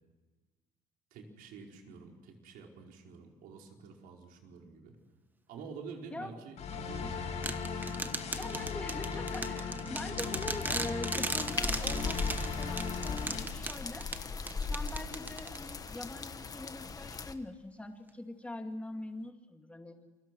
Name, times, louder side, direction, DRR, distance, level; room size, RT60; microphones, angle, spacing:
voice 1, 1.1-5.0 5.5-6.5 6.9-8.0 9.3-9.6 9.8-10.0, right 5 dB, 75° right, 1 dB, 5.0 m, -48 dB
sound 1, 6.6-13.4, left 5 dB, 50° left, 6.6 m, -37 dB
sound 2, 7.4-15.9, right 2 dB, 10° right, 1.3 m, -38 dB
voice 2, 8.4-14.1 14.6-20.0, left 2 dB, 10° left, 4 dB, 2.4 m, -43 dB
sound 3, 11.4-17.3, left 4 dB, 25° left, 1.4 m, -38 dB
29.0 x 24.0 x 6.3 m, 1.3 s
cardioid pair, 135°, 15 cm